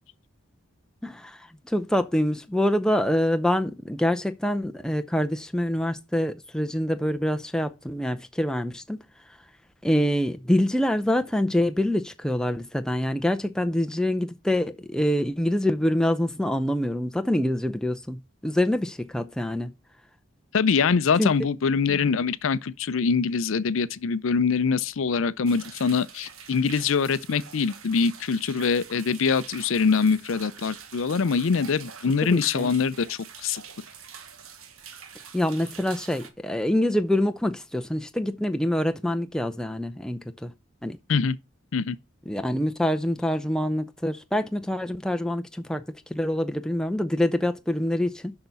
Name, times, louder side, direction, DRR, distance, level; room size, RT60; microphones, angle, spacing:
voice 1, 1.0-1.4 1.7-9.0 9.8-19.7 21.2-21.3 32.2-32.7 35.3-40.5 40.8-41.0 42.3-45.8 46.1-48.3, left 1 dB, 5° left, 0.5 m, -25 dB
voice 2, 20.5-33.6 41.1-41.4 41.7-42.0, left 5 dB, 70° left, 0.5 m, -24 dB
sound 1, 25.5-36.3, right 7 dB, 80° right, 1.2 m, -45 dB
6.5 x 5.8 x 6.8 m
head